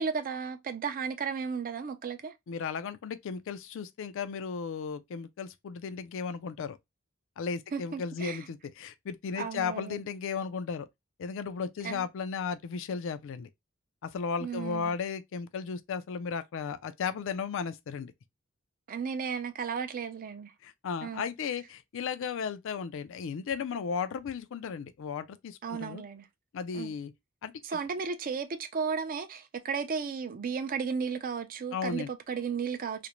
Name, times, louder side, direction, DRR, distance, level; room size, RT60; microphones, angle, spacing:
voice 1, 0.0-2.3 7.7-8.5 9.4-10.0 11.8-12.1 14.4-14.9 18.9-20.5 21.0-21.2 25.6-26.3 26.7-26.9 27.6-33.1, right 6 dB, 40° right, 0.4 m, -34 dB
voice 2, 2.5-6.8 7.4-10.9 11.2-13.5 14.0-18.1 20.6-26.0 26.5-27.1 27.4-27.5 31.7-32.1, left 6 dB, 65° left, 0.4 m, -35 dB
2.5 x 2.1 x 2.9 m
head